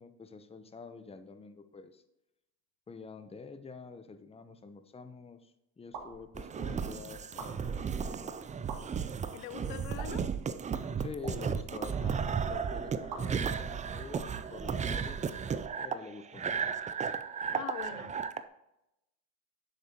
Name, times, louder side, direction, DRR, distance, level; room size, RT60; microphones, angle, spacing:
voice 1, 0.0-2.0 2.9-8.3 11.0-15.2 15.8-16.8, left 4 dB, 15° left, 10 dB, 0.7 m, -47 dB
sound 1, 5.9-6.2 7.2-7.5 8.5-8.8 9.9-10.3 11.1-11.4 13.1-13.2 14.1-15.2, right 5 dB, 50° right, 2.5 m, -44 dB
sound 2, 6.3-18.4, right 6 dB, 20° right, 0.4 m, -34 dB
voice 2, 9.3-10.2 17.5-18.2, left 12 dB, 80° left, 14 dB, 0.7 m, -43 dB
9.7 x 6.8 x 2.9 m, 0.88 s
supercardioid pair, 90°, 44 cm